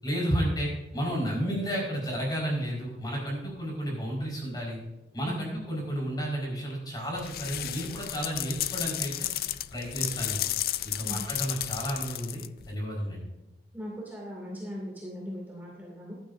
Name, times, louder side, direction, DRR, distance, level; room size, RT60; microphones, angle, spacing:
voice 1, 0.0-4.8 5.1-9.3 9.7-10.5 10.8-13.2, equal, 25° left, -2 dB, 4.7 m, -32 dB
sound 1, 7.2-12.7, left 13 dB, 55° left, 0.4 m, -33 dB
voice 2, 13.7-16.1, equal, 10° right, -4 dB, 2.4 m, -39 dB
15.0 x 12.0 x 2.6 m, 0.99 s
head